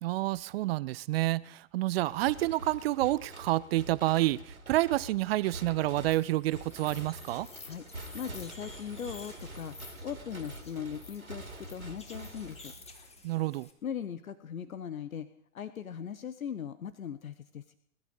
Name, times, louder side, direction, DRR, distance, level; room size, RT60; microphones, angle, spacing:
voice 1, 0.0-7.5 13.2-13.7, right 17 dB, 45° right, 21 dB, 0.5 m, -29 dB
sound 1, 2.0-13.2, right 1 dB, 90° right, 2.8 m, -46 dB
sound 2, 6.1-13.7, left 3 dB, 15° left, 2.4 m, -52 dB
voice 2, 8.1-9.8 10.0-12.7 13.8-17.7, left 8 dB, 80° left, 13 dB, 1.0 m, -39 dB
21.0 x 12.0 x 5.3 m, 0.68 s
figure-of-eight pair, 95°, 41 cm